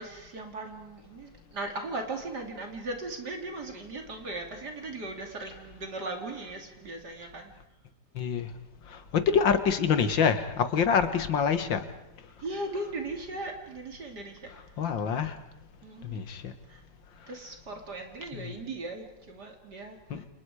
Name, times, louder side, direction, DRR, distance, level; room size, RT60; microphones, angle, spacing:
voice 1, 0.0-7.5 12.4-14.5 15.8-16.2 16.7-16.8 17.3-20.3, right 2 dB, 60° right, 3 dB, 3.3 m, -38 dB
voice 2, 8.2-8.5 8.9-11.8 14.8-15.4 16.0-16.5 18.3-18.5 20.1-20.2, left 6 dB, 85° left, 9 dB, 2.3 m, -26 dB
29.5 x 27.5 x 4.9 m, 0.86 s
omnidirectional pair, 2.0 m